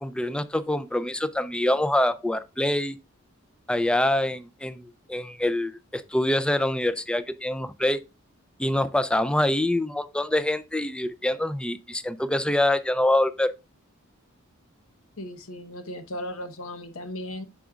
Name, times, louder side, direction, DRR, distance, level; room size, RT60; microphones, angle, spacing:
voice 1, 0.0-3.0 3.7-8.0 8.6-13.5, left 1 dB, 5° left, 0.3 m, -25 dB
voice 2, 15.2-17.5, left 1 dB, 75° left, 1.0 m, -36 dB
8.7 x 6.1 x 2.3 m
head